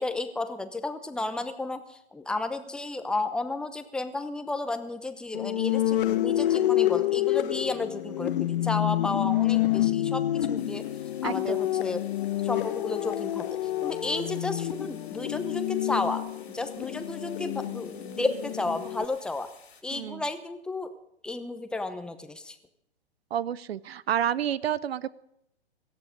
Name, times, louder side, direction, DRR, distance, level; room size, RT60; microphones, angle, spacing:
voice 1, 0.0-10.9 11.2-12.0 12.4-16.2 16.5-19.5 19.8-20.9 21.2-22.6, left 2 dB, 5° left, 9 dB, 0.8 m, -32 dB
sound 1, 5.3-19.0, left 13 dB, 55° left, 1.0 m, -28 dB
sound 2, 10.6-19.8, left 6 dB, 75° left, 3.4 m, -55 dB
voice 2, 11.2-11.6 19.9-20.2 23.3-25.1, right 10 dB, 65° right, 20 dB, 0.8 m, -29 dB
18.0 x 13.5 x 5.1 m, 0.78 s
hypercardioid pair, 125°, 32 cm